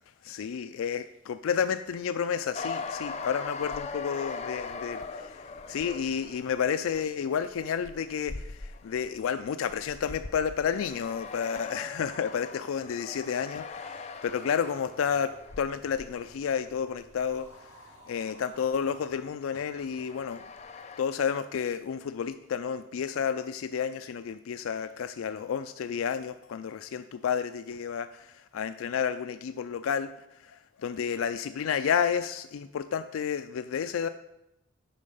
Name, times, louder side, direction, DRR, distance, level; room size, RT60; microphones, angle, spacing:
voice 1, 0.2-5.4 5.7-17.5 18.1-20.4 21.0-30.1 30.4-34.1, left 7 dB, 90° left, 11 dB, 0.4 m, -31 dB
sound 1, 2.5-18.1 18.4-21.0, left 4 dB, 35° left, 0.5 m, -41 dB
sound 2, 17.1-19.2, right 1 dB, 30° right, 3.0 m, -53 dB
8.5 x 5.6 x 5.4 m, 0.88 s
head